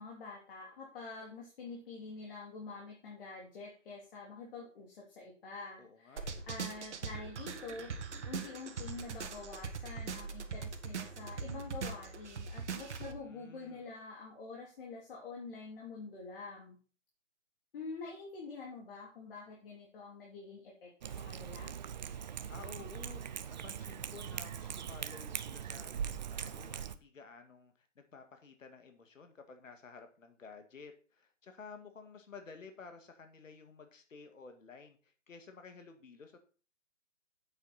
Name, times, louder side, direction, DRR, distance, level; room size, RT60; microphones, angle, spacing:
voice 1, 0.0-16.8 17.7-21.7, left 4 dB, 45° left, -2 dB, 3.2 m, -47 dB
voice 2, 5.8-6.5 13.1-13.9 22.5-23.2 23.5-36.4, left 5 dB, 75° left, 6 dB, 2.1 m, -53 dB
sound 1, 6.2-13.1, right 5 dB, 60° right, 1.7 m, -41 dB
Cat, 21.0-26.9, right 8 dB, 35° right, 0.6 m, -41 dB
8.9 x 8.2 x 4.2 m, 0.38 s
hypercardioid pair, 150°, 38 cm